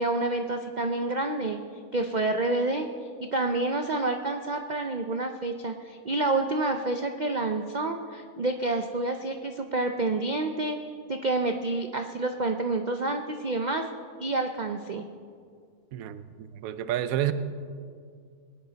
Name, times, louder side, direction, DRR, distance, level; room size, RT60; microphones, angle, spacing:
voice 1, 0.0-1.6 1.9-2.9 3.3-10.8 11.1-13.9 14.2-15.0, right 2 dB, 85° right, 5 dB, 0.4 m, -28 dB
voice 2, 15.9-17.3, right 12 dB, 65° right, 12 dB, 1.0 m, -30 dB
21.5 x 10.5 x 4.0 m, 2.2 s
omnidirectional pair, 1.7 m